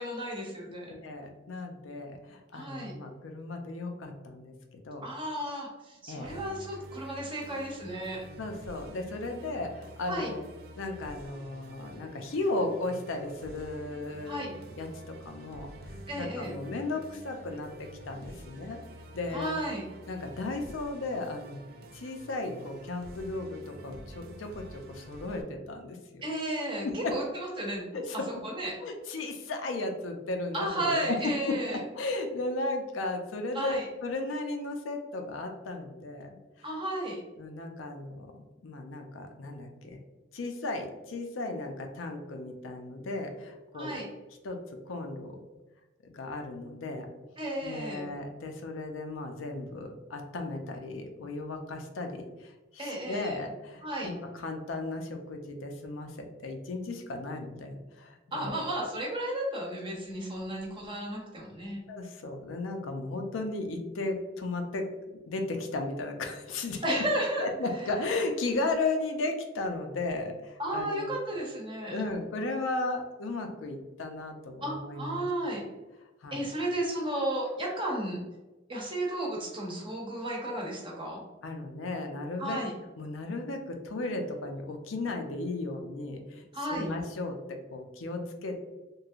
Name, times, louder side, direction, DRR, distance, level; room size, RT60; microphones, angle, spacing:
voice 1, 0.0-0.9 2.5-3.0 5.0-8.2 10.1-10.3 14.3-14.5 16.1-16.5 19.3-19.9 26.2-27.9 28.4-28.8 30.5-31.8 33.5-33.9 36.6-37.2 43.7-44.1 47.4-48.1 52.8-53.4 53.8-54.1 58.3-61.8 66.8-67.5 70.6-72.0 74.6-75.6 76.3-78.2 78.7-81.2 82.4-82.7 86.5-86.9, right 1 dB, 25° right, -3 dB, 0.8 m, -33 dB
voice 2, 0.9-4.5 4.8-5.0 6.1-6.3 8.4-10.4 10.8-14.4 14.8-18.8 19.1-19.5 20.1-21.6 21.9-26.3 26.8-27.2 27.9-28.3 28.8-36.4 37.4-40.0 40.3-44.0 44.4-44.6 44.9-45.4 46.0-47.1 47.6-58.6 61.9-66.8 67.4-71.1 71.9-75.2 76.2-76.4 81.4-82.6 83.0-86.5 86.7-88.6, left 2 dB, 90° left, 4 dB, 0.5 m, -35 dB
Musical instrument, 6.2-25.4, right 1 dB, 50° right, 0.4 m, -48 dB
3.0 x 2.6 x 2.4 m, 1.1 s
head